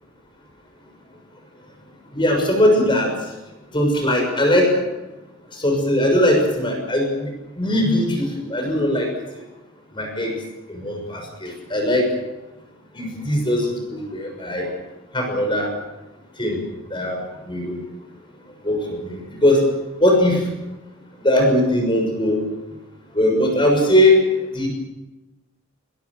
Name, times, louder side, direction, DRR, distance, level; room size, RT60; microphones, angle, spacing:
voice 1, 2.1-3.1 3.7-4.7 5.5-7.3 7.6-9.1 9.9-10.3 10.7-12.0 12.9-14.7 15.1-15.7 16.4-16.6 16.9-17.8 18.6-19.6 20.0-20.4 21.2-22.4 23.1-24.2 24.5-24.7, left 1 dB, 25° left, 2 dB, 6.5 m, -19 dB
22.0 x 22.0 x 6.6 m, 1.1 s
head